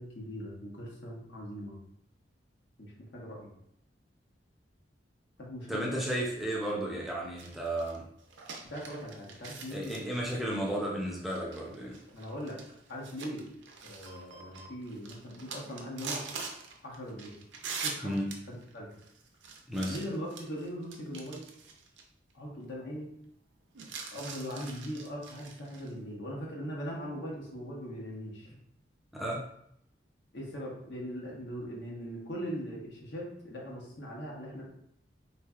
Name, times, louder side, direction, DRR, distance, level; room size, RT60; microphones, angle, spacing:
voice 1, 0.0-1.8 2.8-3.5 5.4-6.1 8.7-10.2 12.1-12.6 12.9-13.4 13.8-16.2 16.8-17.3 17.8-18.1 18.5-18.9 19.9-21.4 22.3-23.1 24.1-28.6 30.3-34.6, equal, 70° left, -4 dB, 1.2 m, -40 dB
voice 2, 5.7-8.1 9.7-12.0 18.0-18.4 19.7-20.0 29.1-29.5, right 1 dB, ahead, -4 dB, 0.5 m, -33 dB
sound 1, 7.4-22.0 22.3-22.4 23.7-25.9, right 5 dB, 85° right, 0.6 m, -44 dB
3.9 x 3.1 x 2.4 m, 0.73 s
head